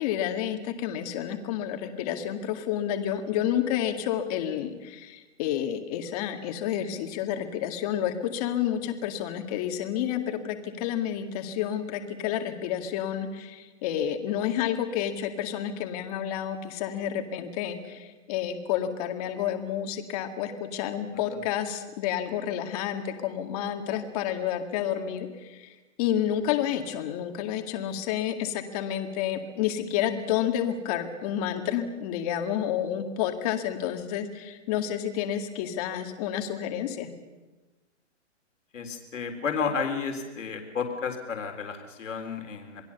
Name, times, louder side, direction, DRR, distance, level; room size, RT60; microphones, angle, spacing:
voice 1, 0.0-37.1, left 10 dB, 30° left, 6 dB, 2.2 m, -30 dB
voice 2, 38.7-42.8, left 5 dB, 80° left, 3 dB, 3.8 m, -32 dB
27.5 x 20.5 x 7.0 m, 1.2 s
hypercardioid pair, 155°, 37 cm